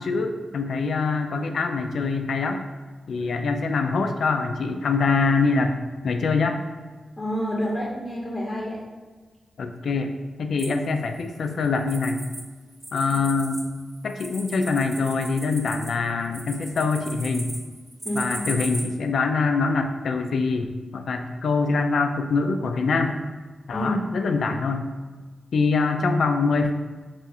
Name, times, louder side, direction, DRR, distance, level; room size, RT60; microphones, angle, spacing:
voice 1, 0.0-2.6 3.1-5.8 6.0-6.6 9.6-10.1 10.4-12.2 12.9-13.6 14.0-17.5 18.1-23.2 23.7-24.9 25.5-26.7, left 4 dB, 70° left, 6 dB, 0.3 m, -24 dB
voice 2, 7.2-8.8 18.0-18.3 23.7-24.0, equal, 20° left, -4 dB, 0.7 m, -28 dB
sound 1, 10.6-12.4 12.7-18.8, right 1 dB, 20° right, 0.8 m, -37 dB
3.5 x 2.4 x 4.1 m, 1.4 s
cardioid pair, 80°, 0 cm